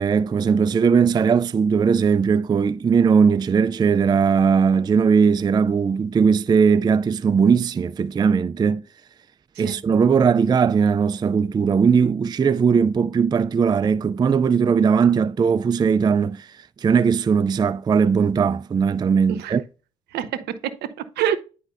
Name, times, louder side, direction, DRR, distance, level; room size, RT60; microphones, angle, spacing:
voice 1, 0.0-8.8 9.6-19.6, right 6 dB, 25° right, 0.3 m, -19 dB
voice 2, 20.1-21.4, right 10 dB, 65° right, 0.8 m, -27 dB
9.6 x 5.1 x 2.5 m
hypercardioid pair, 50°, 18 cm